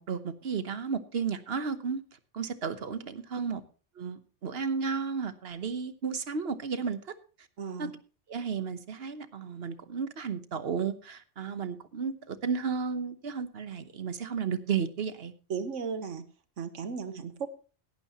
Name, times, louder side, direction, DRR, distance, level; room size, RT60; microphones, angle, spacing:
voice 1, 0.0-2.0 2.3-3.6 4.0-7.2 7.8-7.9 8.3-15.3, right 6 dB, 60° right, 12 dB, 1.3 m, -33 dB
voice 2, 7.6-7.9 15.5-16.2 16.6-17.5, right 6 dB, 85° right, 11 dB, 1.4 m, -35 dB
16.5 x 11.5 x 3.0 m, 0.36 s
omnidirectional pair, 1.2 m